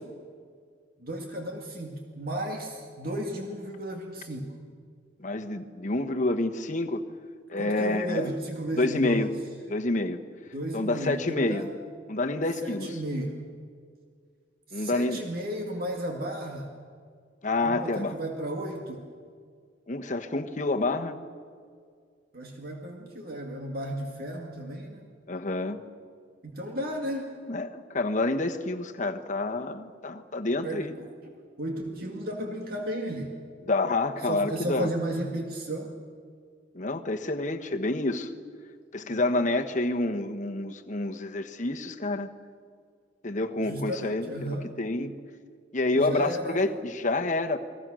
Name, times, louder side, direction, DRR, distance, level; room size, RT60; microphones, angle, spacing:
voice 1, 1.0-4.5 7.6-9.3 10.5-11.7 12.6-13.4 14.7-16.7 17.6-19.1 22.3-25.0 26.4-27.3 30.6-31.3 31.6-33.4 34.2-35.9 43.6-44.8 45.9-46.7, right 1 dB, 50° right, 1 dB, 2.2 m, -34 dB
voice 2, 5.2-7.0 7.5-8.3 8.8-9.3 9.7-10.2 10.7-11.7 12.1-13.0 14.7-15.2 17.4-18.2 19.9-21.2 25.3-25.8 27.5-30.9 33.7-34.9 36.7-38.3 38.9-42.3 43.2-45.1 45.7-47.6, left 2 dB, 40° left, 5 dB, 1.3 m, -28 dB
29.5 x 21.0 x 6.4 m, 2.1 s
head